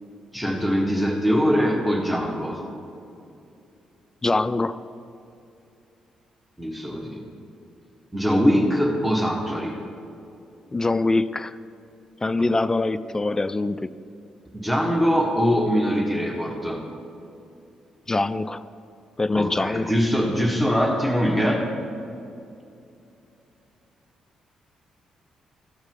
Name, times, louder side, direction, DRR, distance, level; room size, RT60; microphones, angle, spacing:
voice 1, 0.3-2.6 6.6-7.2 8.1-9.8 14.5-16.8 19.3-22.1, equal, ahead, 0 dB, 1.3 m, -22 dB
voice 2, 4.2-4.8 10.7-11.6 12.2-13.9 18.1-18.6 19.2-19.9, left 2 dB, 20° left, 14 dB, 0.4 m, -23 dB
13.5 x 4.8 x 3.8 m, 2.6 s
hypercardioid pair, 45°, 2 cm